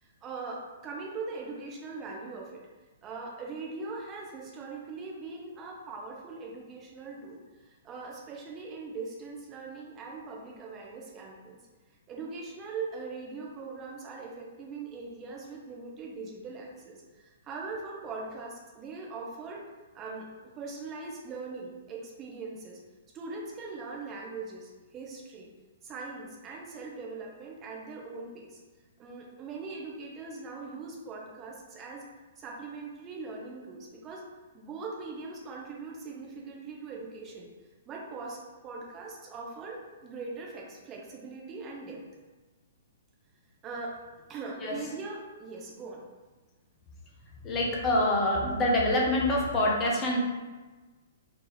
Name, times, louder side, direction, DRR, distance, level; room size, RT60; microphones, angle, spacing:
voice 1, 0.0-2.6 3.0-11.6 12.1-19.6 19.9-20.3 20.6-22.8 23.1-25.5 25.8-28.6 29.0-32.1 32.4-34.2 34.5-37.5 37.9-42.0 43.6-44.0 44.3-46.0, right 4 dB, 20° right, -2 dB, 0.7 m, -41 dB
voice 2, 47.4-50.2, left 1 dB, 25° left, -3 dB, 0.7 m, -26 dB
4.3 x 2.8 x 3.1 m, 1.3 s
figure-of-eight pair, 115°, 0 cm